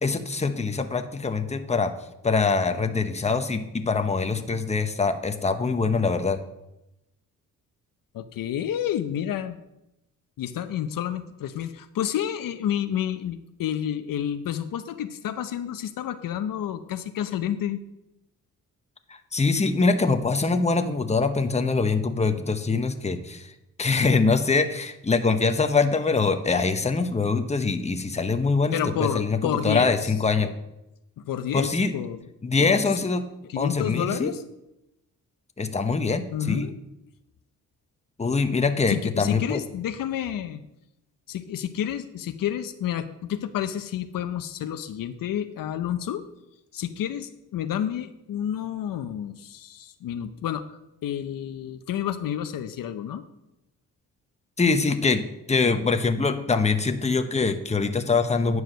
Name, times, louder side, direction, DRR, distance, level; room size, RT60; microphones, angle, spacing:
voice 1, 0.0-1.9 2.2-6.4 19.1-23.5 23.8-29.4 29.6-30.5 31.5-31.9 32.4-33.2 33.6-34.3 35.6-36.7 38.2-39.6 54.6-58.6, left 4 dB, 20° left, 8 dB, 0.9 m, -23 dB
voice 2, 8.1-9.6 10.4-17.8 28.7-30.1 30.4-30.5 31.2-32.3 32.6-33.1 33.5-34.4 36.3-36.7 38.9-40.6 41.3-46.2 46.7-53.2, left 10 dB, 75° left, 10 dB, 0.7 m, -30 dB
9.4 x 4.8 x 6.3 m, 0.89 s
cardioid pair, 70°, 34 cm